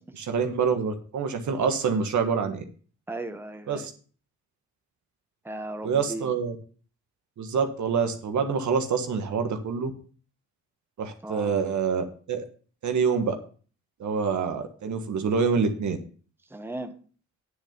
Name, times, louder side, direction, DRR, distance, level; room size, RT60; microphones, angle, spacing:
voice 1, 0.1-2.6 3.7-3.9 5.8-6.5 7.4-9.9 11.0-12.4 12.8-13.4 14.0-16.0, right 5 dB, 65° right, 6 dB, 1.6 m, -26 dB
voice 2, 3.1-3.9 5.4-6.3 11.2-11.6 16.5-16.9, right 1 dB, 5° right, 7 dB, 1.2 m, -36 dB
9.9 x 6.5 x 5.2 m, 0.41 s
cardioid pair, 70°, 31 cm